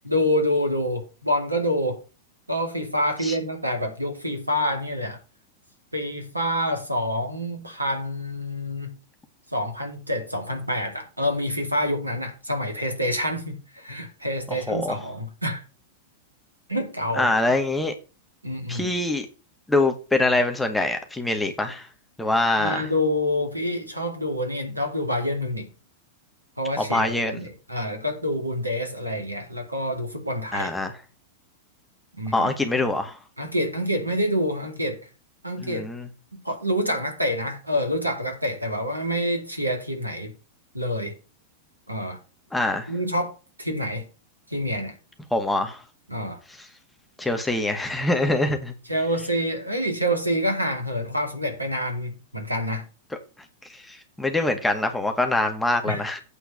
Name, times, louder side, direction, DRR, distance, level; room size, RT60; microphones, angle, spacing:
voice 1, 0.0-2.0 2.5-5.2 5.9-8.9 9.5-15.6 16.7-17.3 18.4-18.9 22.6-25.7 26.6-30.7 32.2-32.5 33.4-35.0 35.4-35.8 36.4-40.3 40.7-41.1 41.9-42.2 42.9-44.1 44.5-44.9 46.1-46.4 48.9-52.8 55.8-56.0, equal, 85° right, 2.4 m, -27 dB
voice 2, 14.7-15.0 17.2-17.9 18.7-19.3 19.7-21.9 22.2-22.9 26.8-27.4 30.5-30.9 32.3-33.2 35.6-36.1 42.5-42.9 45.3-45.8 47.2-48.7 53.9-56.2, left 2 dB, 5° left, 1.9 m, -24 dB
8.7 x 4.5 x 7.1 m
figure-of-eight pair, 95°, 0 cm